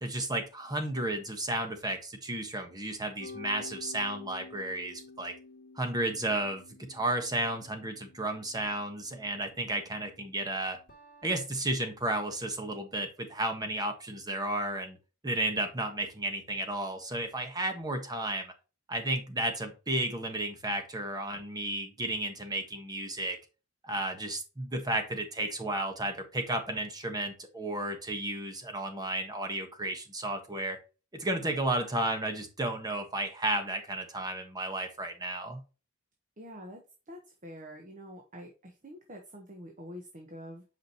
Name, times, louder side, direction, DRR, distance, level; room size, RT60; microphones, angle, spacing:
voice 1, 0.0-5.3 5.7-10.8 11.2-15.0 15.2-18.5 18.9-23.4 23.8-30.8 31.1-35.6, right 1 dB, 20° right, 5 dB, 1.3 m, -33 dB
sound 1, 3.2-11.4, left 3 dB, 40° left, 2.3 m, -50 dB
voice 2, 36.4-36.8 37.1-40.6, equal, 35° right, 3 dB, 1.2 m, -46 dB
8.0 x 5.0 x 3.0 m, 0.32 s
head